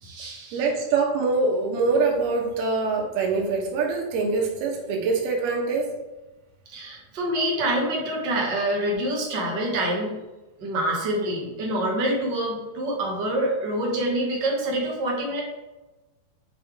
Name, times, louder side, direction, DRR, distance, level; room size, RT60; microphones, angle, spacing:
voice 1, 0.0-0.6 6.7-10.2 10.6-15.4, right 1 dB, 55° right, -2 dB, 1.2 m, -26 dB
voice 2, 0.5-6.0, right 4 dB, 80° right, 0 dB, 3.2 m, -24 dB
7.7 x 5.6 x 3.5 m, 1.1 s
omnidirectional pair, 4.5 m